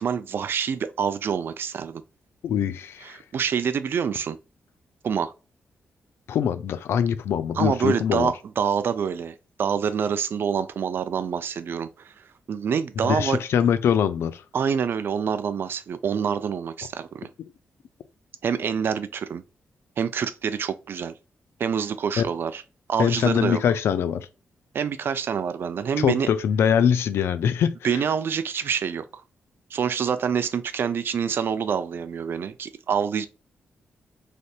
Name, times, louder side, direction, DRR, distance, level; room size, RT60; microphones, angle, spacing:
voice 1, 0.0-2.0 3.0-4.4 5.0-5.3 7.5-12.1 12.5-13.4 14.5-17.3 18.4-19.4 20.0-21.1 21.6-22.6 22.9-23.6 24.7-26.3 27.8-29.2 29.7-33.3, right 7 dB, 65° right, 0.4 m, -26 dB
voice 2, 2.4-3.2 6.3-8.3 13.0-14.4 22.2-22.3 23.0-24.3 26.0-28.0, left 8 dB, 80° left, 0.4 m, -23 dB
3.3 x 2.7 x 2.4 m
cardioid pair, 70°, 4 cm